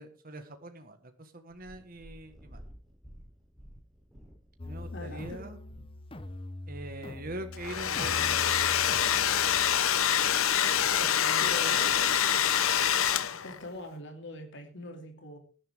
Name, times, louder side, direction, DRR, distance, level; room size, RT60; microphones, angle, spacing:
voice 1, 0.0-2.6 4.6-5.6 6.7-8.4 9.1-9.6 10.0-12.2, right 1 dB, 40° right, 7 dB, 1.6 m, -44 dB
Purr, 1.5-7.8 8.6-8.7, equal, ahead, 7.7 m, -53 dB
sound 1, 4.6-9.8, left 2 dB, 25° left, 1.0 m, -42 dB
voice 2, 4.9-5.4 11.4-11.8 13.4-15.4, left 1 dB, 55° left, 4 dB, 2.7 m, -42 dB
Domestic sounds home sounds, 7.5-13.6, left 9 dB, 70° left, 0.9 m, -26 dB
18.5 x 11.0 x 3.6 m, 0.37 s
head